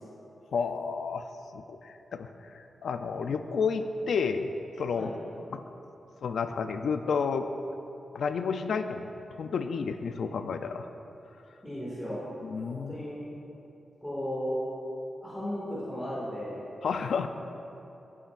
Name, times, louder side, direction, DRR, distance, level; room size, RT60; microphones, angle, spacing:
voice 1, 0.5-1.3 1.5-4.5 4.8-5.1 5.5-5.6 6.2-7.5 8.1-9.1 9.4-10.9 12.4-12.9 16.8-17.3, left 5 dB, 80° left, 8 dB, 0.5 m, -31 dB
voice 2, 11.6-12.2 12.7-13.1 14.0-14.7 15.2-16.6, equal, 5° left, -10 dB, 2.2 m, -35 dB
16.0 x 8.4 x 2.5 m, 2.9 s
wide cardioid pair, 140°, 0 cm